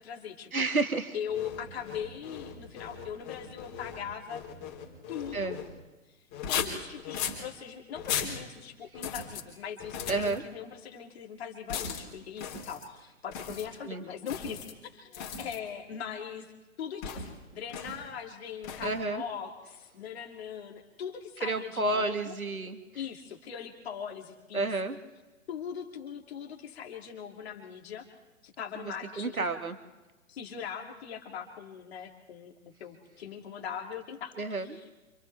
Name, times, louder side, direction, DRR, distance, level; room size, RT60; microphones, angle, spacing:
voice 1, 0.0-0.7 1.1-4.4 5.1-5.6 6.5-14.7 14.9-16.5 16.8-22.3 22.9-24.7 25.5-28.1 28.4-29.4 30.3-32.5 32.8-34.8, left 8 dB, 50° left, 1 dB, 2.8 m, -40 dB
voice 2, 0.5-1.1 5.3-5.6 10.1-10.4 13.8-14.0 18.8-19.2 21.4-22.8 24.5-25.0 29.2-29.8 34.4-34.8, right 3 dB, 85° right, 8 dB, 1.9 m, -30 dB
sound 1, 1.3-5.7 6.3-7.4 8.0-8.4 8.9-9.4 9.8-10.4 11.7-12.0 12.4-12.9 13.3-13.7 14.3-14.7 15.1-15.6 17.0-17.3 17.7-18.0 18.6-19.0, left 7 dB, 25° left, 3.9 m, -37 dB
29.0 x 27.5 x 3.4 m, 1.1 s
figure-of-eight pair, 130°, 41 cm